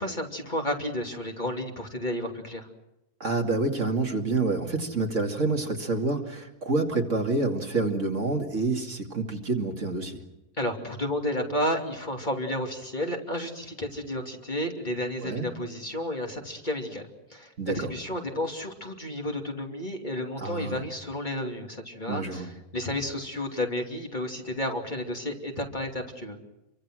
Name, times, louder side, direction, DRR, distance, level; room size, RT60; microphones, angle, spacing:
voice 1, 0.0-2.7 10.6-17.0 17.3-26.4, left 1 dB, 30° left, 2 dB, 2.9 m, -32 dB
voice 2, 3.2-10.2 15.2-15.5 17.6-17.9 20.4-20.8 22.1-22.5, right 3 dB, 50° right, 3 dB, 2.7 m, -28 dB
28.5 x 24.0 x 6.3 m, 0.92 s
omnidirectional pair, 1.6 m